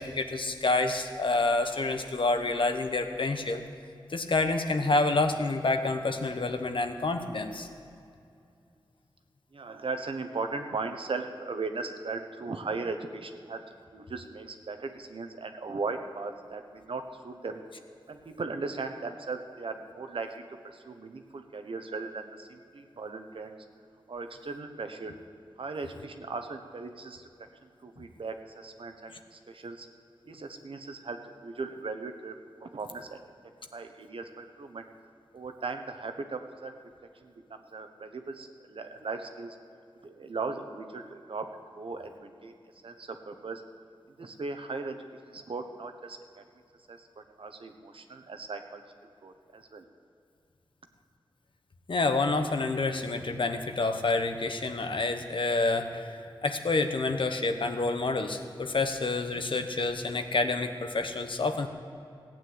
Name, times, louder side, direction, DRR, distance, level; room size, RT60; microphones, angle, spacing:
voice 1, 0.0-3.6 4.1-7.7 51.9-61.7, left 3 dB, 65° left, 6 dB, 1.1 m, -28 dB
voice 2, 9.5-13.6 13.9-17.6 18.1-23.5 24.1-25.1 25.6-29.9 30.2-32.4 32.6-33.2 33.7-34.9 35.3-36.7 37.2-39.6 40.0-41.5 41.8-42.5 42.8-43.6 44.2-45.0 45.2-46.4 46.9-49.8, right 4 dB, 75° right, 6 dB, 1.1 m, -38 dB
16.0 x 8.9 x 8.0 m, 2.5 s
wide cardioid pair, 60°, 9 cm